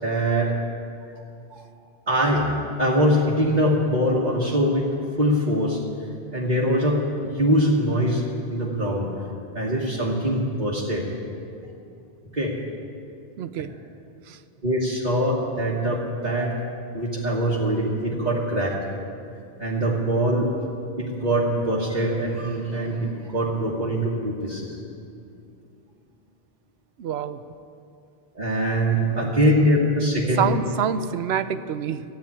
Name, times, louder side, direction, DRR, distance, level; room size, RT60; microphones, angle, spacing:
voice 1, 0.0-0.5 1.5-1.6 2.1-4.9 5.2-5.8 6.3-8.2 8.5-9.3 9.5-11.1 12.3-12.5 14.6-16.5 16.9-18.8 19.6-20.5 21.0-24.8 28.3-30.5, equal, 45° right, -6 dB, 1.6 m, -23 dB
voice 2, 13.4-13.7 14.3-14.4 27.0-27.4 30.4-32.0, right 8 dB, 85° right, 12 dB, 0.9 m, -26 dB
13.5 x 9.3 x 9.8 m, 2.6 s
omnidirectional pair, 1.0 m